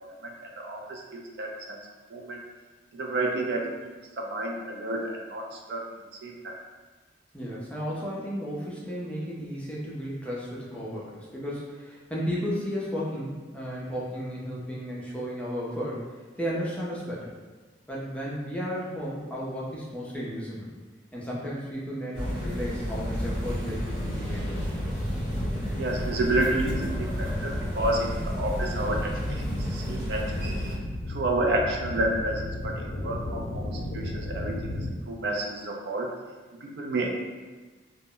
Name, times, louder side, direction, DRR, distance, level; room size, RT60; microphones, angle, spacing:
voice 1, 0.0-1.8 2.1-2.4 2.9-5.8 6.2-6.5 25.8-30.6 31.1-32.7 33.0-36.1 36.6-37.1, right 2 dB, 60° right, 0 dB, 0.4 m, -30 dB
voice 2, 7.3-16.0 16.4-17.3 17.9-20.7 21.1-24.8, equal, 5° left, -6 dB, 0.4 m, -34 dB
sound 1, 22.1-30.8, equal, 35° right, 1.0 m, -32 dB
sound 2, 22.9-34.9, left 1 dB, 90° left, 0.4 m, -35 dB
2.0 x 2.0 x 3.7 m, 1.3 s
head